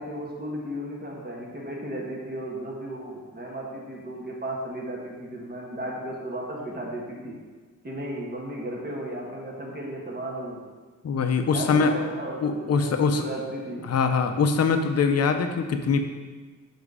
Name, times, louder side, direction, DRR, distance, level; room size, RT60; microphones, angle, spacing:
voice 1, 0.0-7.4 7.8-10.6 11.5-13.9, right 1 dB, 30° right, -2 dB, 1.3 m, -35 dB
voice 2, 11.0-11.9 12.4-13.2 13.8-16.1, left 5 dB, 50° left, 7 dB, 0.6 m, -23 dB
7.3 x 4.0 x 4.9 m, 1.4 s
wide cardioid pair, 160°, 32 cm